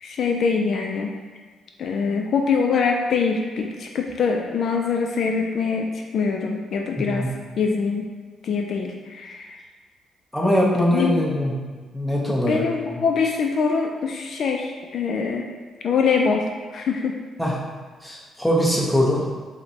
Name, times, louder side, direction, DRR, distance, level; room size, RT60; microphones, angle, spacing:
voice 1, 0.0-1.1 1.8-7.3 7.6-8.1 8.4-9.6 10.9-11.3 12.3-15.5 15.8-16.4 16.7-17.2, left 5 dB, 60° left, 2 dB, 0.3 m, -24 dB
voice 2, 10.3-11.5 11.9-13.0 17.4-17.6 18.0-19.3, equal, 5° left, -4 dB, 0.8 m, -22 dB
5.0 x 2.1 x 2.8 m, 1.4 s
cardioid pair, 90°, 0 cm